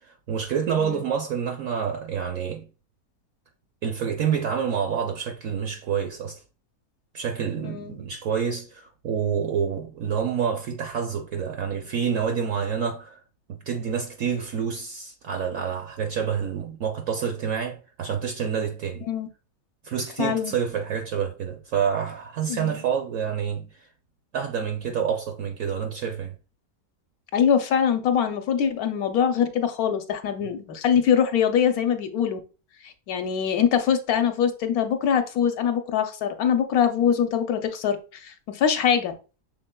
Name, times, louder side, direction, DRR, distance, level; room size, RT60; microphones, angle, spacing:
voice 1, 0.0-2.7 3.8-6.4 7.1-13.2 13.5-19.1 19.8-23.9 24.3-26.4, right 7 dB, 65° right, 0.9 m, -28 dB
voice 2, 7.6-8.0 19.1-19.3 20.2-20.5 22.5-22.8 27.3-32.4 32.8-39.1, left 8 dB, 70° left, 1.1 m, -23 dB
6.4 x 3.5 x 2.2 m
omnidirectional pair, 1.7 m